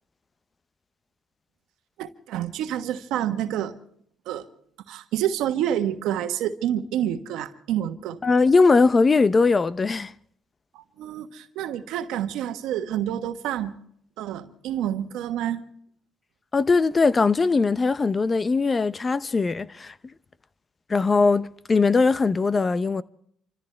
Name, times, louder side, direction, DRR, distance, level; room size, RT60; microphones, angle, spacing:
voice 1, 2.0-3.7 4.3-4.5 4.9-8.2 10.7-13.7 14.2-15.6, right 11 dB, 80° right, 1.3 m, -28 dB
voice 2, 8.2-10.1 16.5-19.9 20.9-23.0, left 4 dB, 30° left, 0.6 m, -20 dB
28.5 x 14.5 x 3.4 m
supercardioid pair, 75°, 0 cm